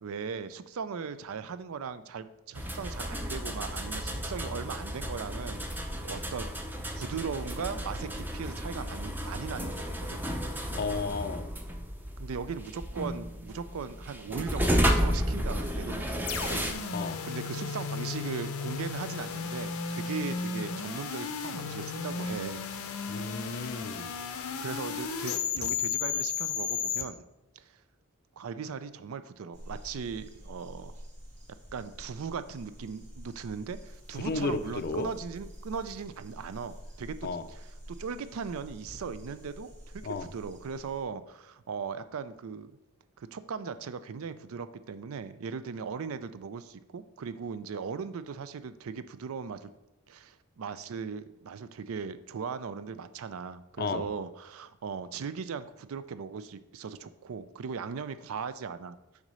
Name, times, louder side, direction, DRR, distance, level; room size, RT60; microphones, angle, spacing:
voice 1, 0.0-6.5 7.0-10.2 12.2-16.7 17.2-22.6 23.6-23.8 24.6-27.2 27.6-27.7 28.4-30.9 31.7-42.8 43.2-49.7 50.1-59.0, right 6 dB, 70° right, 13 dB, 0.4 m, -38 dB
sound 1, 2.5-16.7, equal, 10° right, 0.6 m, -32 dB
voice 2, 10.7-11.5 16.9-17.2 23.1-24.1 34.2-35.1 37.2-37.4 40.0-40.3 53.8-54.1, left 4 dB, 45° left, 11 dB, 0.4 m, -33 dB
sound 2, 16.3-27.0, left 6 dB, 90° left, 0.7 m, -34 dB
sound 3, 29.5-41.0, equal, 35° right, 1.8 m, -48 dB
6.0 x 3.9 x 5.4 m, 0.95 s
head